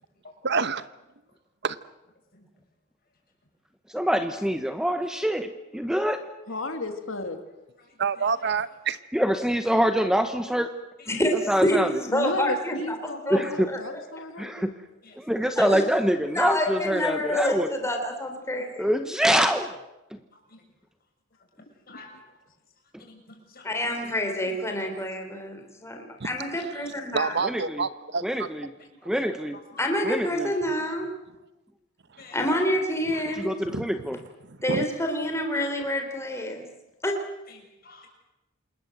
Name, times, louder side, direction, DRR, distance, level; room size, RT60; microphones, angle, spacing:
voice 1, 0.4-0.9 1.6-1.7 8.0-9.0 26.2-26.3 27.1-28.5 33.7-33.9 34.5-34.8, right 5 dB, 55° right, 15 dB, 0.9 m, -27 dB
voice 2, 3.9-6.2 9.1-10.7 11.5-11.9 13.3-13.7 14.4-14.7 15.2-17.7 18.8-19.7 20.1-20.2 27.4-27.9 28.2-28.7 29.0-29.6 30.0-30.5 33.4-34.2, equal, 5° right, 9 dB, 0.9 m, -25 dB
voice 3, 6.5-7.4 12.1-14.7 21.9-22.0, left 2 dB, 75° left, 6 dB, 2.6 m, -33 dB
voice 4, 7.8-8.5 11.0-11.2 15.0-15.2 21.9-22.1 23.0-23.9 24.4-24.8 28.8-29.0 29.7-29.8 32.2-32.5 33.1-33.2 37.5-37.6 37.8-38.1, left 3 dB, 45° left, 2 dB, 7.2 m, -50 dB
voice 5, 11.1-14.0 15.6-15.8 16.3-18.8 23.6-27.5 29.8-31.1 32.3-33.5 34.6-36.7 37.0-37.2, left 1 dB, 15° left, 3 dB, 3.8 m, -28 dB
27.5 x 20.5 x 7.9 m, 0.99 s
head